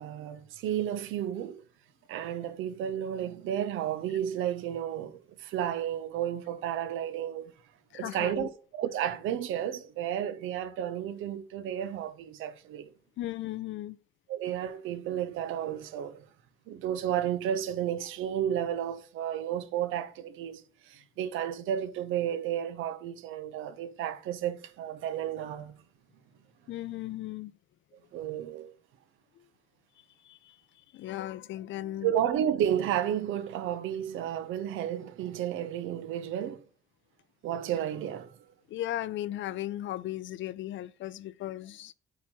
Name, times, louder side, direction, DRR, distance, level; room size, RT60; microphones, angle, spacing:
voice 1, 0.0-1.6 2.1-7.5 7.9-8.5 8.8-12.9 14.3-16.2 16.7-25.8 28.1-28.7 32.0-36.6 37.4-38.4, right 10 dB, 90° right, 0.7 m, -32 dB
voice 2, 7.9-8.5 13.2-14.0 26.7-27.5 29.4-29.5 30.2-30.6 30.9-32.1 38.7-41.9, left 14 dB, 70° left, 0.5 m, -36 dB
8.4 x 3.0 x 6.0 m
cardioid pair, 90°, 20 cm